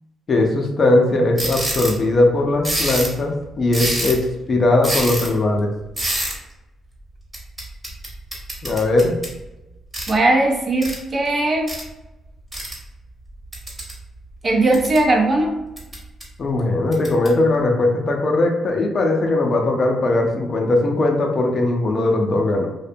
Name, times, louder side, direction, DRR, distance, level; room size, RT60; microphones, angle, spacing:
voice 1, 0.3-4.2 4.5-5.7 8.6-9.2 16.4-22.7, left 2 dB, 45° left, 2 dB, 0.5 m, -19 dB
sound 1, 1.4-2.0 2.6-3.2 3.7-4.3 4.8-5.3 6.0-6.3 7.3-9.4 9.9-10.2 10.8-11.0 11.7-11.8 12.5-12.7 13.5-14.0 14.5-15.0 15.8-16.2 16.9-17.3, right 1 dB, 20° right, 0.9 m, -26 dB
voice 2, 10.1-11.7 14.4-15.6, right 2 dB, 40° right, 1 dB, 0.5 m, -18 dB
2.6 x 2.1 x 2.6 m, 0.99 s
cardioid pair, 90°, 0 cm